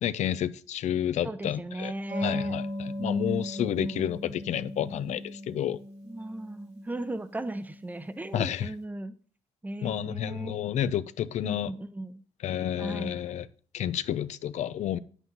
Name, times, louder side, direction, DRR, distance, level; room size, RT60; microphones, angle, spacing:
voice 1, 0.0-1.9 2.2-5.8 8.3-8.7 9.8-11.7 12.4-13.5 13.7-15.0, left 10 dB, 75° left, 0.5 m, -30 dB
voice 2, 1.2-2.6 3.0-4.0 6.0-9.1 9.6-10.6 11.4-12.2 12.8-13.2, right 1 dB, 15° right, 0.8 m, -37 dB
sound 1, 2.1-8.3, left 1 dB, 60° right, 2.3 m, -37 dB
9.2 x 8.2 x 4.0 m
cardioid pair, 100°, 12 cm